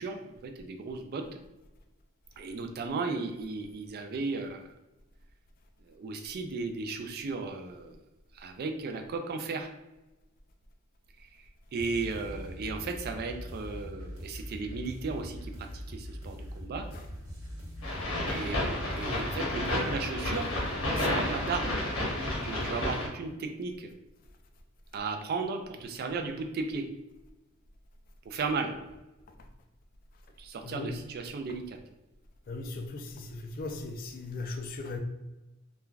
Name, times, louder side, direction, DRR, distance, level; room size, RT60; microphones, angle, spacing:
voice 1, 0.0-1.4 2.4-4.7 5.8-8.0 8.3-9.7 11.2-11.4 11.7-16.9 18.3-20.5 20.9-21.8 22.4-23.9 24.9-26.8 28.3-28.7 30.4-31.8, right 4 dB, 50° right, 0.3 m, -35 dB
sound 1, 11.8-22.7, equal, 85° right, 1.0 m, -42 dB
sound 2, 17.8-23.1, left 1 dB, 85° left, 0.9 m, -31 dB
voice 2, 32.5-35.0, left 3 dB, 45° left, 0.3 m, -38 dB
3.1 x 2.2 x 2.3 m
head